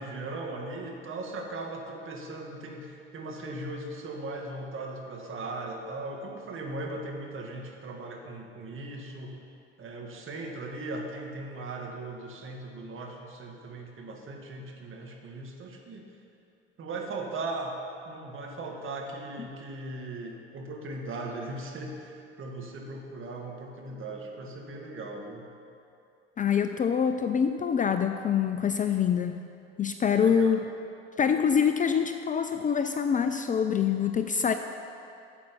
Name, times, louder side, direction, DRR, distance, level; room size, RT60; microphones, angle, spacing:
voice 1, 0.0-9.4 9.8-16.1 16.8-17.8 18.1-25.5 30.1-30.7, right 2 dB, 40° right, 1 dB, 1.9 m, -38 dB
voice 2, 26.4-29.4 29.8-30.6 31.2-34.5, left 7 dB, 25° left, 8 dB, 0.5 m, -25 dB
12.0 x 8.1 x 5.4 m, 2.6 s
hypercardioid pair, 70°, 32 cm